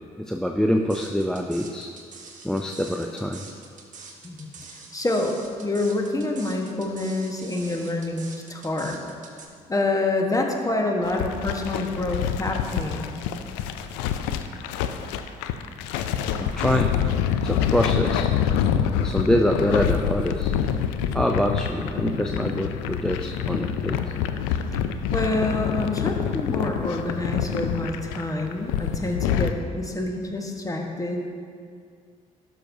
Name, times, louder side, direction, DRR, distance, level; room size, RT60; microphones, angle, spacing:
voice 1, 0.2-1.9 2.4-3.5 16.4-16.9 17.4-18.3 19.0-20.5 21.1-24.0, equal, 5° left, 3 dB, 0.5 m, -25 dB
sound 1, 0.9-9.5, right 5 dB, 45° right, 1.3 m, -44 dB
voice 2, 4.9-9.0 9.7-13.2 25.1-31.3, left 2 dB, 20° left, 2 dB, 1.2 m, -27 dB
sound 2, 11.0-29.5, left 8 dB, 80° left, 0.4 m, -26 dB
12.0 x 6.2 x 2.7 m, 2.2 s
hypercardioid pair, 50°, 17 cm